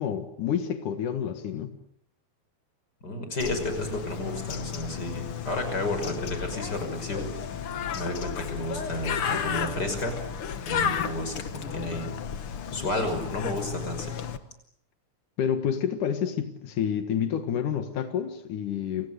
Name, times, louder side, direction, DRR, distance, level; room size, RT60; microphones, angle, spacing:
voice 1, 0.0-1.7 15.4-19.1, left 8 dB, 85° left, 8 dB, 3.2 m, -29 dB
voice 2, 3.0-7.7 7.9-10.2 10.6-11.4 11.7-12.1 12.7-14.3, left 1 dB, 30° left, 7 dB, 6.3 m, -32 dB
Bird, 3.4-14.4, left 8 dB, 55° left, 2.0 m, -33 dB
30.0 x 27.0 x 6.8 m, 0.69 s
omnidirectional pair, 3.5 m